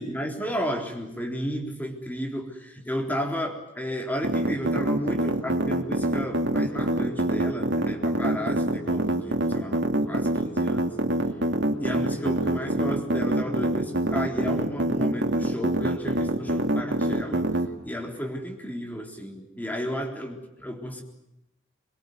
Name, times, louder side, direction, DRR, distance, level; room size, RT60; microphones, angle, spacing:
voice 1, 0.0-11.0 11.8-17.5 17.8-21.0, equal, 10° left, 2 dB, 3.9 m, -33 dB
sound 1, 4.2-17.7, right 1 dB, 65° right, 2.5 m, -24 dB
23.0 x 23.0 x 9.6 m, 0.91 s
head